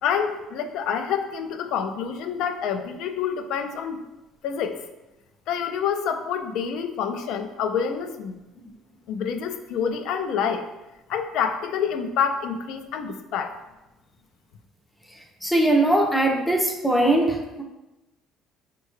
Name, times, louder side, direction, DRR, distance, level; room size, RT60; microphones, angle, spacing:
voice 1, 0.0-4.0 4.4-4.8 5.5-8.4 9.1-10.7 11.1-13.6, left 7 dB, 70° left, 7 dB, 0.3 m, -27 dB
voice 2, 15.4-17.6, right 1 dB, 5° left, 2 dB, 0.4 m, -21 dB
4.6 x 2.2 x 3.1 m, 1.0 s
cardioid pair, 145°, 0 cm